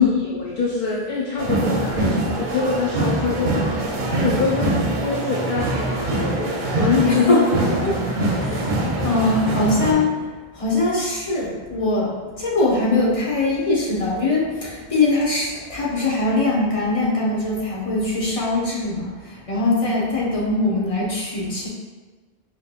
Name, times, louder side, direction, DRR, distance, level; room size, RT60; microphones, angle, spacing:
voice 1, 0.0-7.4 7.8-8.3, left 5 dB, 60° left, -4 dB, 0.6 m, -24 dB
sound 1, 1.4-9.9, right 2 dB, 55° right, 0.7 m, -23 dB
voice 2, 7.0-7.5 7.8-7.9 8.4-10.1 10.6-12.1 12.4-21.7, left 2 dB, 35° left, -5 dB, 0.9 m, -22 dB
5.0 x 3.0 x 2.4 m, 1.3 s
omnidirectional pair, 1.0 m